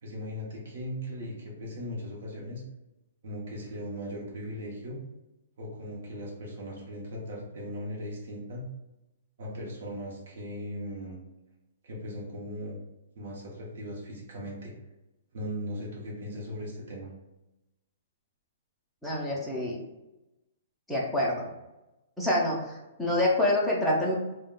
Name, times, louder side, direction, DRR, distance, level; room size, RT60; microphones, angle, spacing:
voice 1, 0.0-2.6 3.2-5.0 5.6-8.7 9.4-11.2 11.8-12.8 13.2-14.7 15.3-17.1, equal, 55° right, -3 dB, 0.7 m, -38 dB
voice 2, 19.0-19.8 20.9-21.5 22.2-24.1, left 1 dB, ahead, -5 dB, 0.4 m, -27 dB
2.2 x 2.1 x 3.6 m, 0.98 s
hypercardioid pair, 170°, 0 cm